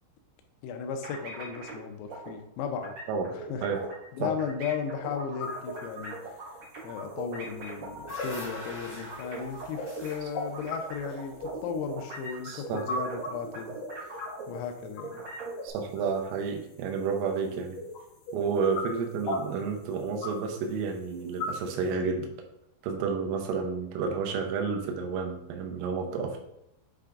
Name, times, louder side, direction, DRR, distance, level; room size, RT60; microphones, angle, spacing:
voice 1, 0.6-3.0 3.3-3.6 4.1-6.2 6.8-13.8 14.1-14.2 14.5-15.2, left 6 dB, 85° left, 5 dB, 3.4 m, -35 dB
sound 1, 1.0-1.8 2.1-2.3 2.8-4.1 4.4-10.2 10.5-14.7 15.0-15.7, right 3 dB, 55° right, 1.4 m, -41 dB
sound 2, 5.4-21.9, left 2 dB, 70° left, 2.0 m, -40 dB
sound 3, 7.6-11.8, left 2 dB, 30° left, 1.9 m, -44 dB
voice 2, 12.4-12.8 15.6-17.8 18.3-22.3 22.8-26.4, right 5 dB, 85° right, 2 dB, 3.7 m, -30 dB
8.8 x 3.4 x 3.8 m, 0.83 s
omnidirectional pair, 5.9 m